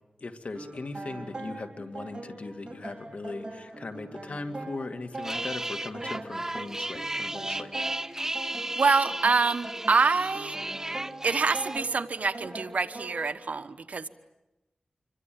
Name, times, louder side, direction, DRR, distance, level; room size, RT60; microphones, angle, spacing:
voice 1, 0.2-7.7, left 3 dB, 65° left, 7 dB, 2.3 m, -39 dB
sound 1, 0.5-13.3, right 2 dB, 40° right, 5.7 m, -42 dB
sound 2, 5.1-11.8, right 1 dB, 20° right, 0.9 m, -34 dB
voice 2, 8.7-10.6 11.2-14.1, right 4 dB, 75° right, 11 dB, 1.1 m, -26 dB
27.0 x 24.0 x 9.3 m, 0.97 s
wide cardioid pair, 65°, 2 cm